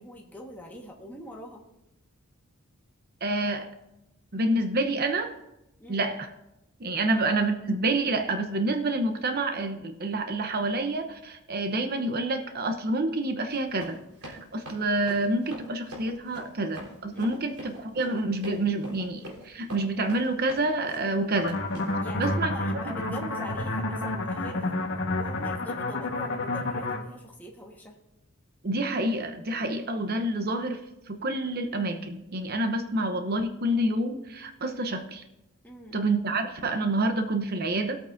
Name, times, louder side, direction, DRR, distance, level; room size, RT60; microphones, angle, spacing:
voice 1, 0.0-1.6 5.8-6.1 7.0-7.1 17.1-17.4 22.0-24.8 25.1-28.0 35.6-36.0, left 1 dB, 10° left, -1 dB, 1.4 m, -43 dB
voice 2, 3.2-3.7 4.3-5.3 5.9-6.3 6.8-14.0 14.2-21.6 22.2-22.5 22.9-23.0 28.6-30.8 31.1-35.2 35.9-38.0, right 2 dB, 45° right, 6 dB, 0.8 m, -28 dB
Run, 13.4-22.0, equal, 75° right, 3.6 m, -44 dB
sound 1, 21.3-27.0, left 2 dB, 55° left, 1.3 m, -30 dB
19.0 x 8.5 x 2.6 m, 0.90 s
head